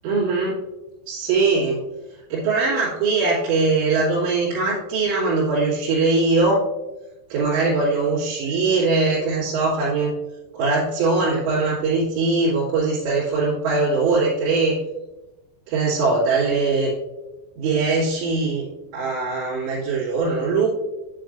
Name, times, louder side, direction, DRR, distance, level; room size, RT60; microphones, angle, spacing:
voice 1, 0.0-0.6 1.1-1.8 2.3-6.7 7.3-10.1 10.5-14.8 15.7-16.9 17.6-18.7 18.9-20.7, right 3 dB, 65° right, -10 dB, 4.2 m, -21 dB
9.6 x 8.7 x 2.6 m, 1.0 s
omnidirectional pair, 5.9 m